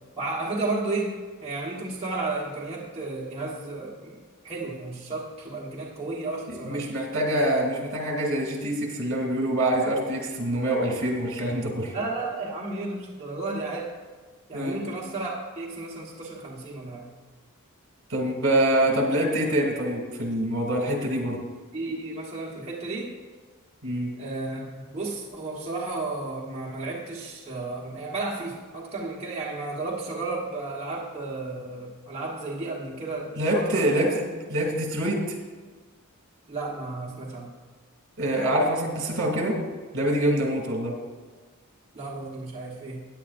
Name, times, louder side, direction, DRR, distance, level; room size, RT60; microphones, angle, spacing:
voice 1, 0.2-1.2 1.4-6.9 11.9-13.9 14.5-17.1 21.7-23.1 24.2-34.1 36.5-37.5 41.9-43.0, right 3 dB, 30° right, -5 dB, 1.3 m, -33 dB
voice 2, 6.5-11.9 14.5-14.8 18.1-21.4 23.8-24.1 33.3-34.2 34.5-35.4 38.2-39.6 39.9-40.9, right 1 dB, 60° right, 1 dB, 2.5 m, -25 dB
16.5 x 9.8 x 2.5 m, 1.4 s
head